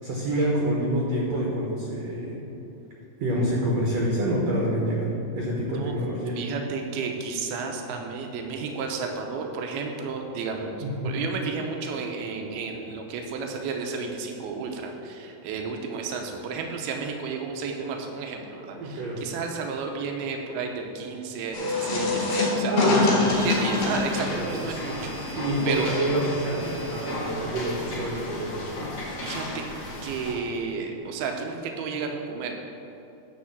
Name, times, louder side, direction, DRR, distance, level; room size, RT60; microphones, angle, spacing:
voice 1, 0.0-2.4 3.2-5.1 5.3-6.4 10.8-11.1 18.8-19.3 22.7-23.4 24.3-24.6 25.4-28.9, right 1 dB, 60° right, -4 dB, 1.9 m, -27 dB
voice 2, 6.3-22.7 23.0-25.9 29.2-29.6 30.0-32.5, right 5 dB, 85° right, 3 dB, 2.8 m, -32 dB
sound 1, 21.5-28.1, left 3 dB, 80° left, 4.3 m, -27 dB
sound 2, 23.2-30.3, left 1 dB, 35° left, 2.4 m, -35 dB
11.0 x 4.2 x 7.2 m, 2.8 s
omnidirectional pair, 4.4 m